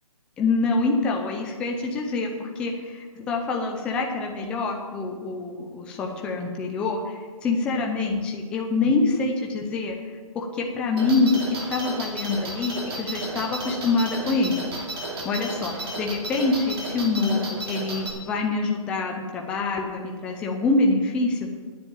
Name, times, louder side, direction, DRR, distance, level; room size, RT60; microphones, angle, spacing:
voice 1, 0.4-9.9 10.3-14.6 15.2-21.5, left 3 dB, 5° left, 1 dB, 0.5 m, -25 dB
sound 1, 11.0-18.1, right 2 dB, 40° right, 2.6 m, -33 dB
9.2 x 7.5 x 9.1 m, 1.5 s
hypercardioid pair, 160°, 19 cm